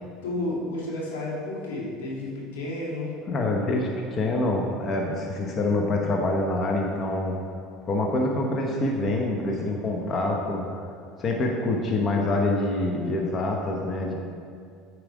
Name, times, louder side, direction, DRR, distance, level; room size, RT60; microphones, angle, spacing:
voice 1, 0.2-3.1, left 2 dB, 90° left, -4 dB, 1.9 m, -31 dB
voice 2, 3.3-7.4 7.9-10.6 11.2-14.1, left 2 dB, 40° left, 0 dB, 1.0 m, -26 dB
9.0 x 4.8 x 4.9 m, 2.3 s
supercardioid pair, 95°, 0 cm